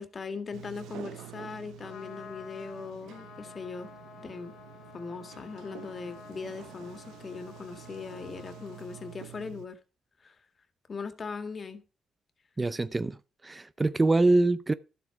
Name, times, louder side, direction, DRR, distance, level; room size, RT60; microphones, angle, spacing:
voice 1, 0.0-3.9 4.2-4.5 4.9-9.8 10.2-10.4 10.9-11.8, left 5 dB, 40° left, 1.8 m, -39 dB
Sliding door, 0.5-9.7, right 14 dB, 85° right, 0.7 m, -48 dB
Trumpet, 1.7-9.3, left 8 dB, 75° left, 2.2 m, -51 dB
voice 2, 12.6-13.2 13.4-14.7, right 2 dB, 20° right, 0.5 m, -24 dB
12.0 x 7.7 x 4.7 m
cardioid pair, 90°, 0 cm